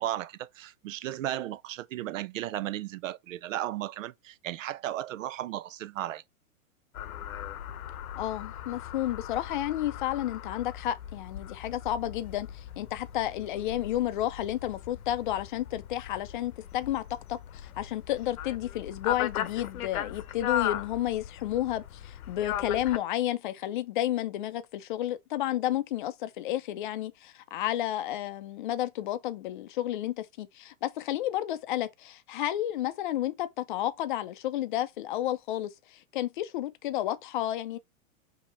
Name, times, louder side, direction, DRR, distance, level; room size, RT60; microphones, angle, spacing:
voice 1, 0.0-6.2, right 13 dB, 65° right, 0.5 m, -35 dB
sound 1, 6.9-23.0, left 11 dB, 80° left, 0.8 m, -38 dB
voice 2, 8.2-37.8, left 13 dB, 35° left, 0.5 m, -31 dB
5.1 x 2.9 x 3.3 m
hypercardioid pair, 160°, 43 cm